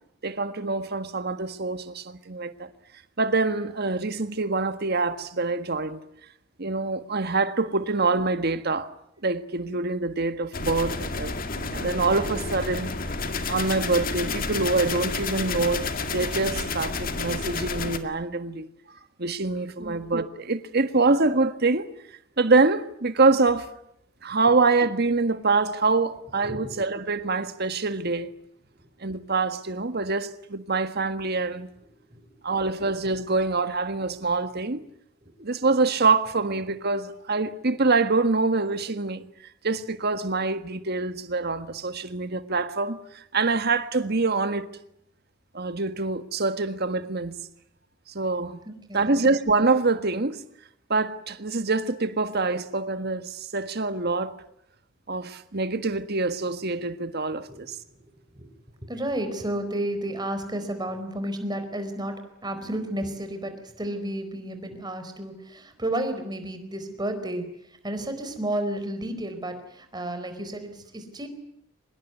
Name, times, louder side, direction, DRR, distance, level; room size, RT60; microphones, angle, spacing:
voice 1, 0.2-2.7 3.2-6.0 6.6-8.9 9.2-12.9 13.5-18.7 19.2-21.9 22.4-23.7 24.2-28.3 29.0-31.7 32.4-34.8 35.4-39.2 39.6-44.7 45.5-47.4 48.1-48.6 48.9-50.4 50.9-54.4 55.1-57.8, right 3 dB, 50° right, 1.6 m, -25 dB
sound 1, 10.5-18.0, left 3 dB, 45° left, 2.1 m, -30 dB
sound 2, 13.8-17.1 17.4-17.6, left 1 dB, 85° left, 7.6 m, -48 dB
voice 2, 48.7-49.2 57.5-57.6 58.3-58.5 58.9-62.2 62.4-67.4 67.8-71.3, right 1 dB, 20° right, 4.5 m, -32 dB
25.0 x 21.0 x 9.4 m
head